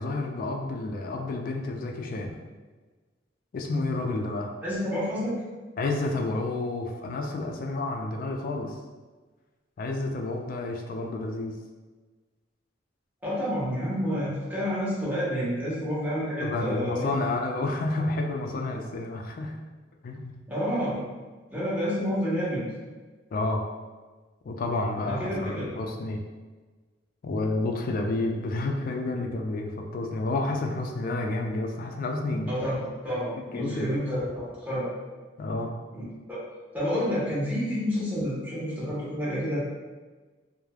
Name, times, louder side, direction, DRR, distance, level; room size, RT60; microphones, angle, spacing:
voice 1, 0.0-2.4 3.5-4.5 5.8-8.7 9.8-11.6 16.4-19.6 20.0-20.3 23.3-23.6 24.4-26.2 27.2-32.5 33.4-34.0 35.4-35.7, left 2 dB, 50° left, 2 dB, 0.3 m, -30 dB
voice 2, 4.6-5.4 13.2-17.1 20.5-20.9 21.5-22.6 25.0-25.7 32.5-34.9 35.9-36.4 36.7-39.6, equal, 10° right, -10 dB, 0.9 m, -29 dB
3.1 x 2.0 x 2.3 m, 1.3 s
head